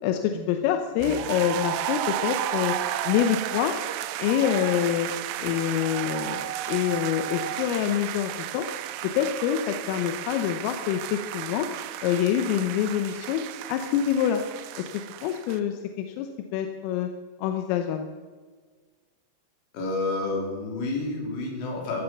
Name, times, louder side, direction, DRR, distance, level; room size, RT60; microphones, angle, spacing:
voice 1, 0.0-2.8 3.1-3.8 4.2-5.1 5.4-8.7 9.2-11.7 12.0-14.4 14.8-14.9 15.2-17.1 17.4-18.1, left 10 dB, 85° left, 6 dB, 3.5 m, -26 dB
sound 1, 1.0-15.6, right 12 dB, 90° right, 2.5 m, -33 dB
voice 2, 19.7-22.0, left 2 dB, 65° left, 0 dB, 5.6 m, -30 dB
15.5 x 13.0 x 5.9 m, 1.5 s
omnidirectional pair, 5.8 m